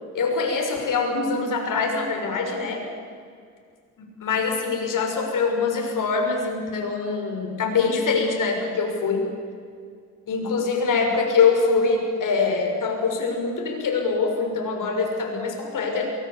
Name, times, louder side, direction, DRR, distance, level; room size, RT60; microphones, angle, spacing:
voice 1, 0.1-2.9 4.0-9.3 10.3-16.1, left 4 dB, 60° left, 3 dB, 6.4 m, -24 dB
23.0 x 21.0 x 8.4 m, 2.1 s
cardioid pair, 75°, 35 cm